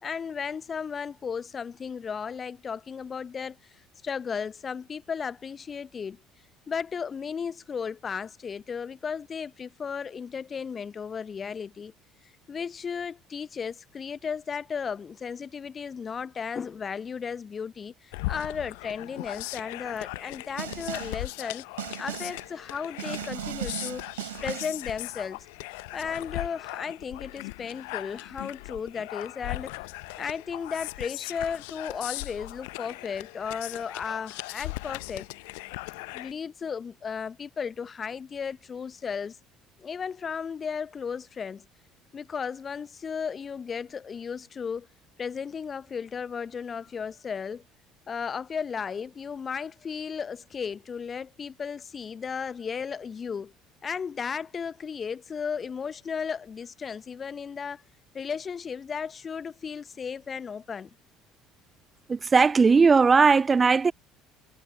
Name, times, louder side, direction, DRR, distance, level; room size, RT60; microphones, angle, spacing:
voice 1, 0.0-3.6 4.0-6.2 6.7-11.9 12.5-21.6 22.0-24.0 24.4-25.5 25.9-29.7 30.2-35.3 36.1-39.4 39.8-41.7 42.1-44.9 45.2-47.6 48.1-53.5 53.8-57.8 58.1-60.9, left 6 dB, 35° left, 0.9 m, -35 dB
sound 1, 18.1-36.3, left 27 dB, 65° left, 0.9 m, -38 dB
Snare drum, 20.6-21.3 21.8-22.5 23.0-24.9, right 14 dB, 75° right, 3.5 m, -37 dB
voice 2, 62.1-63.9, right 4 dB, 25° right, 0.3 m, -18 dB
figure-of-eight pair, 55°, 0 cm